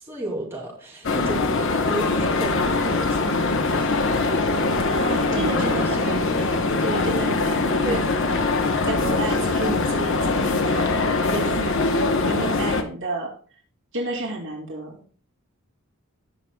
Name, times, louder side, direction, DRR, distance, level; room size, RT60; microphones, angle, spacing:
voice 1, 0.0-4.0 5.3-6.2 7.8-8.1, right 1 dB, 10° right, -3 dB, 2.7 m, -33 dB
sound 1, 1.0-12.8, left 3 dB, 60° left, 1.0 m, -22 dB
voice 2, 4.8-13.3 13.9-14.9, right 2 dB, 60° right, -1 dB, 2.8 m, -31 dB
17.5 x 6.7 x 2.3 m, 0.43 s
head